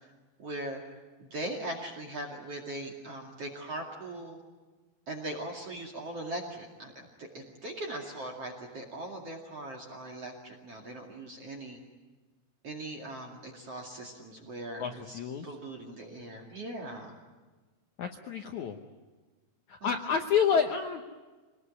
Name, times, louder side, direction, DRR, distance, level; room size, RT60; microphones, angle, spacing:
voice 1, 0.4-0.8 1.2-4.4 5.1-11.8 12.6-17.2 19.8-20.1, right 1 dB, 40° right, 2 dB, 2.8 m, -40 dB
voice 2, 14.8-15.4 18.0-18.8 19.7-21.1, left 7 dB, 70° left, 4 dB, 1.8 m, -29 dB
25.5 x 20.0 x 9.7 m, 1.3 s
omnidirectional pair, 4.8 m